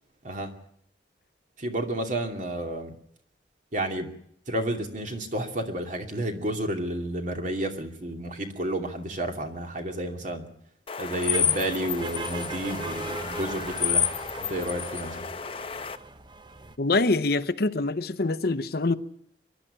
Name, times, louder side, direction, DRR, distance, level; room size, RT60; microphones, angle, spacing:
voice 1, 1.6-2.9 3.7-4.1 4.5-10.5 11.0-14.1 14.4-15.3, right 1 dB, 45° right, 2.6 m, -31 dB
sound 1, 10.9-16.0, left 7 dB, 30° left, 0.8 m, -30 dB
sound 2, 11.3-16.8, right 3 dB, 25° right, 0.9 m, -39 dB
voice 2, 16.8-18.9, left 3 dB, 60° left, 0.8 m, -25 dB
24.0 x 11.5 x 10.0 m
head